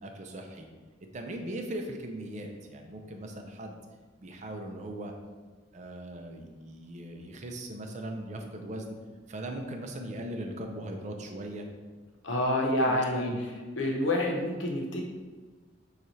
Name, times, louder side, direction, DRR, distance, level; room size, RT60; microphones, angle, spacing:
voice 1, 0.0-0.7 1.1-3.8 4.2-5.1 5.7-8.8 9.3-11.6 12.6-13.4, right 1 dB, 40° right, 3 dB, 0.5 m, -39 dB
voice 2, 12.2-13.3 13.8-15.0, left 1 dB, 85° left, 0 dB, 0.8 m, -27 dB
6.7 x 2.4 x 3.1 m, 1.4 s
head